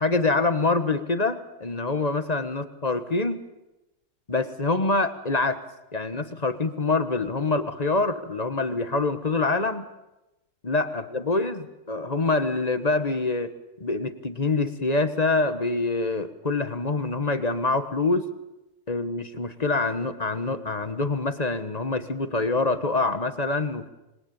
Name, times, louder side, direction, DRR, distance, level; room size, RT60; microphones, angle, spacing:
voice 1, 0.0-3.4 4.3-5.6 5.9-9.9 10.6-13.5 13.8-18.3 18.9-23.9, left 3 dB, 25° left, 11 dB, 1.3 m, -25 dB
26.5 x 21.5 x 8.9 m, 0.99 s
omnidirectional pair, 1.7 m